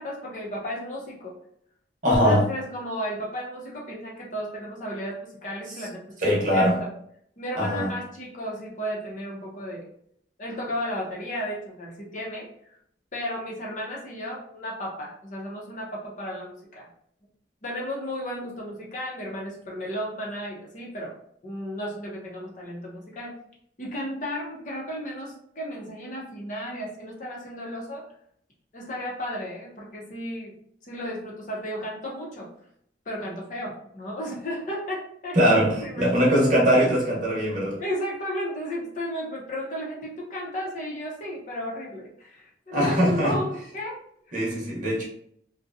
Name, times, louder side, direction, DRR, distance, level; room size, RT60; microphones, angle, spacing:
voice 1, 0.0-1.4 2.1-6.9 7.4-9.8 10.4-12.5 13.1-16.9 17.6-21.1 21.4-23.3 23.8-28.0 28.7-30.5 30.8-32.5 33.1-35.5 35.8-36.9 37.8-44.0, equal, 45° left, -3 dB, 0.7 m, -34 dB
voice 2, 2.0-2.5 6.2-6.8 7.6-7.9 35.3-37.8 42.7-43.4 44.3-45.0, equal, 45° right, -4 dB, 0.8 m, -21 dB
2.6 x 2.2 x 2.5 m, 0.68 s
head